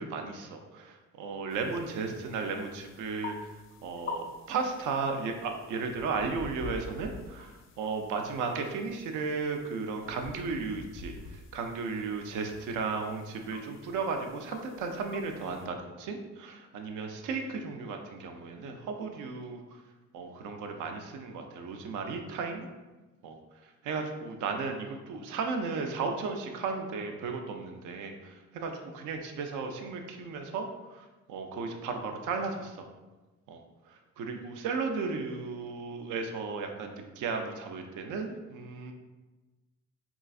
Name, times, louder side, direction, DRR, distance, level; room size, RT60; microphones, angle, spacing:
voice 1, 0.0-3.5 3.8-19.6 20.1-22.7 23.2-23.4 23.6-32.8 33.5-33.6 33.9-38.9, right 4 dB, 80° right, 4 dB, 0.5 m, -35 dB
sound 1, 1.5-15.7, left 3 dB, 45° left, 0.4 m, -47 dB
3.8 x 2.4 x 2.4 m, 1.2 s
cardioid pair, 90°, 30 cm